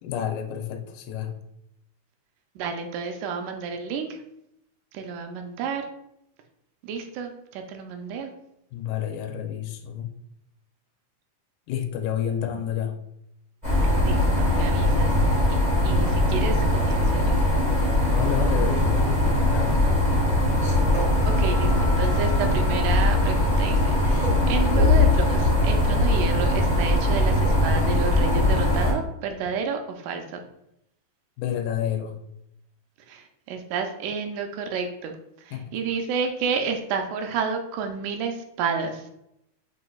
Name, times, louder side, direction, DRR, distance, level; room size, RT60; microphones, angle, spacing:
voice 1, 0.0-1.4 8.7-10.1 11.7-13.0 18.0-19.8 31.4-32.2 35.5-35.9, left 9 dB, 85° left, 4 dB, 2.0 m, -30 dB
voice 2, 2.6-4.2 4.9-5.9 6.8-8.3 14.0-15.2 15.8-17.4 21.2-30.4 33.1-35.1 35.4-39.1, right 5 dB, 85° right, 5 dB, 2.0 m, -30 dB
sound 1, 13.6-28.9, left 1 dB, 40° right, 0.6 m, -21 dB
6.1 x 2.5 x 2.3 m, 0.79 s
omnidirectional pair, 3.5 m